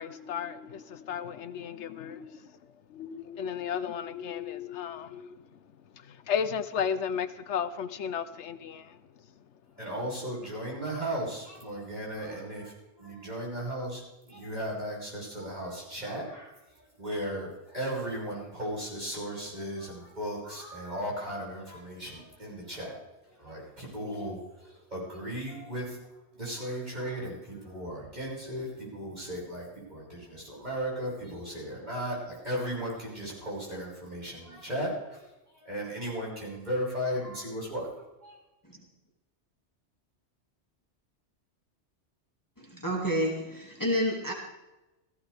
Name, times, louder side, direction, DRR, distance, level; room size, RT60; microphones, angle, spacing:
voice 1, 0.0-2.5 2.9-5.4 6.0-9.0, left 7 dB, 80° left, 1.0 m, -34 dB
voice 2, 9.8-16.5 17.0-23.0 23.3-26.0 26.3-35.3 35.6-37.9 38.2-38.3, equal, 40° right, 6.4 m, -36 dB
voice 3, 42.6-44.3, equal, 15° left, 2.2 m, -29 dB
17.0 x 15.5 x 3.5 m
omnidirectional pair, 1.2 m